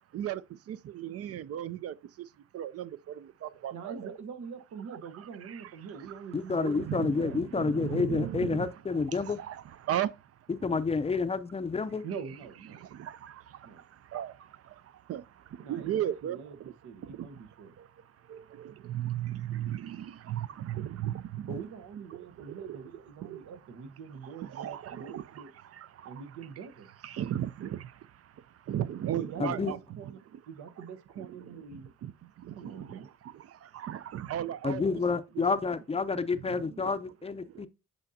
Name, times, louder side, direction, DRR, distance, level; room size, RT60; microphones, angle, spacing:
voice 1, 0.1-4.1 4.9-5.7 6.0-6.2 6.7-10.5 12.7-16.7 17.0-17.4 17.7-21.5 22.1-22.8 23.2-23.5 24.2-26.2 27.0-30.4 31.2-35.4 36.2-36.8 37.5-37.7, right 11 dB, 55° right, 0.4 m, -37 dB
voice 2, 3.7-8.2 12.0-12.8 13.6-13.8 15.6-16.6 16.8-17.7 21.5-25.5 26.0-26.9 29.1-30.2 30.5-31.9 32.5-33.1, right 6 dB, 80° right, 1.1 m, -43 dB
voice 3, 6.3-9.4 10.5-12.0 29.4-29.7 34.6-37.7, left 4 dB, 20° left, 0.5 m, -29 dB
8.1 x 5.2 x 2.7 m
cardioid pair, 90°, 30 cm